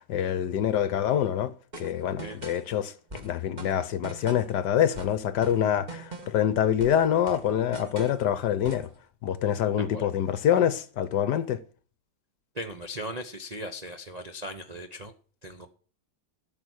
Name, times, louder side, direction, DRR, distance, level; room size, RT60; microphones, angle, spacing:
voice 1, 0.0-1.5 1.8-8.9 9.2-11.6, left 10 dB, 65° left, 1.2 m, -26 dB
sound 1, 1.7-2.7 3.1-4.6 4.9-6.5 6.8-8.2 8.6-8.9, right 3 dB, 25° right, 1.5 m, -42 dB
voice 2, 12.5-15.1 15.4-15.7, equal, 75° right, 0.3 m, -38 dB
13.0 x 6.8 x 6.3 m
omnidirectional pair, 2.3 m